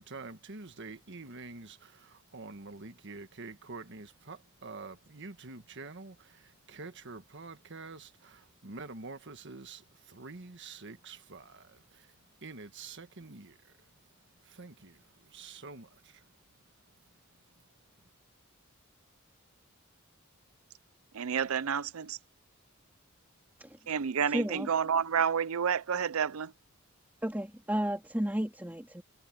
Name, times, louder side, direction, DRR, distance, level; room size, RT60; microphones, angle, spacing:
voice 1, 0.0-12.1 12.4-13.8 14.4-16.3, right 3 dB, 60° right, 1.5 m, -47 dB
voice 2, 21.1-22.2 23.9-26.5, right 7 dB, 85° right, 0.6 m, -30 dB
voice 3, 24.3-24.7 27.2-29.0, right 1 dB, 10° right, 2.7 m, -33 dB
head